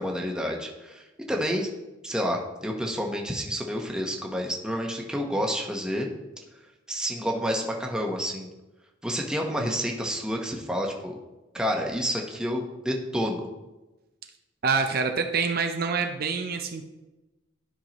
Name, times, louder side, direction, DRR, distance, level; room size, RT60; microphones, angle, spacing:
voice 1, 0.0-1.7 2.0-6.1 6.9-8.5 9.0-11.2 11.5-13.5, equal, 5° right, 0 dB, 1.0 m, -29 dB
voice 2, 14.6-16.9, right 5 dB, 55° right, 5 dB, 0.6 m, -26 dB
11.5 x 5.6 x 3.0 m, 1.1 s
head